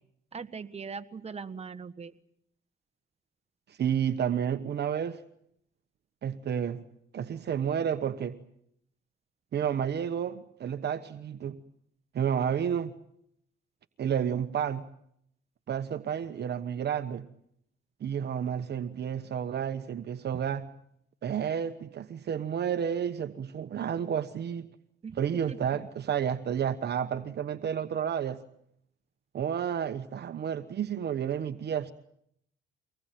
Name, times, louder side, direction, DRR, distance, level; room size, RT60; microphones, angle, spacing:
voice 1, 0.3-2.1 25.0-25.2 25.5-25.6, right 5 dB, 30° right, 10 dB, 1.7 m, -40 dB
voice 2, 3.7-5.2 6.2-6.8 7.1-8.3 9.5-11.6 12.1-12.9 14.0-14.8 15.7-17.2 18.0-20.7 21.2-24.7 25.1-28.4 29.3-31.9, right 8 dB, 55° right, 10 dB, 1.2 m, -31 dB
24.5 x 20.0 x 9.2 m, 0.72 s
cardioid pair, 90°, 20 cm